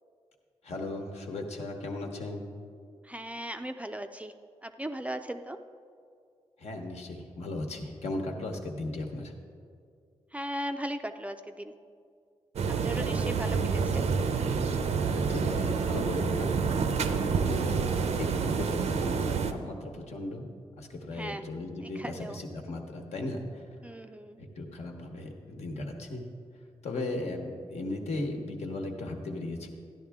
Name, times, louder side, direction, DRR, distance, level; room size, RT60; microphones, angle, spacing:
voice 1, 0.6-2.5 6.6-9.3 13.0-13.5 15.0-16.5 16.9-17.8 18.2-20.4 20.8-23.6 24.4-26.2 26.8-29.7, left 2 dB, 75° left, 2 dB, 1.2 m, -37 dB
voice 2, 3.1-4.3 4.6-5.6 10.3-11.7 12.8-14.0 21.1-21.4 21.8-22.4 23.8-24.4, equal, 10° right, 8 dB, 0.4 m, -37 dB
sound 1, 12.6-19.5, right 5 dB, 80° right, 0.6 m, -28 dB
13.0 x 10.5 x 3.6 m, 2.3 s
wide cardioid pair, 115°, 11 cm